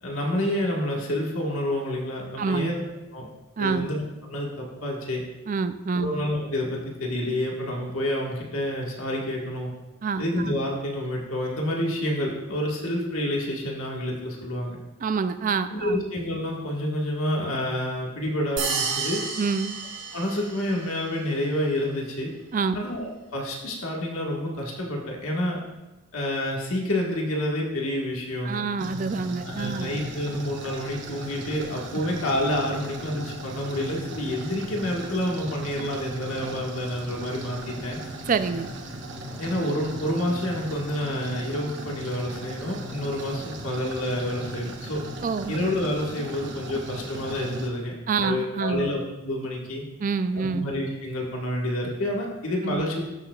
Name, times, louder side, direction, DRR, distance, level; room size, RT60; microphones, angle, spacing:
voice 1, 0.0-2.8 3.1-3.3 3.6-4.0 4.3-5.2 6.0-9.7 10.2-14.8 15.7-19.2 20.1-22.3 22.7-25.6 26.1-28.6 29.4-38.0 39.4-45.0 45.5-47.9 48.2-49.8 50.4-53.1, left 1 dB, 90° left, -1 dB, 1.6 m, -28 dB
voice 2, 2.4-2.7 3.6-3.9 5.5-6.1 10.0-10.2 15.0-16.0 19.4-19.8 22.5-22.8 28.4-29.9 38.3-38.7 45.2-45.6 48.1-48.9 50.0-50.7 52.6-52.8, right 5 dB, 40° right, 11 dB, 0.3 m, -27 dB
sound 1, 18.6-20.9, right 5 dB, 75° right, 2.6 m, -30 dB
sound 2, 28.8-47.7, right 1 dB, 55° right, 1.1 m, -37 dB
14.5 x 6.7 x 2.3 m, 1.1 s
head